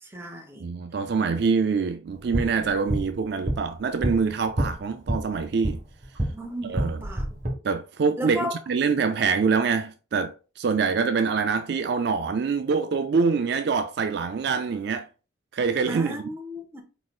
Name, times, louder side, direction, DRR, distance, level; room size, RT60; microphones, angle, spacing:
voice 1, 0.0-0.7 6.3-7.2 8.2-8.6 15.9-16.8, equal, 10° right, 0.8 m, -35 dB
voice 2, 0.6-5.8 6.7-7.0 7.6-15.1 15.5-16.2, right 5 dB, 55° right, 0.3 m, -25 dB
sound 1, 2.1-6.4 6.7-7.5, right 1 dB, 35° right, 1.3 m, -29 dB
4.8 x 4.0 x 2.3 m
head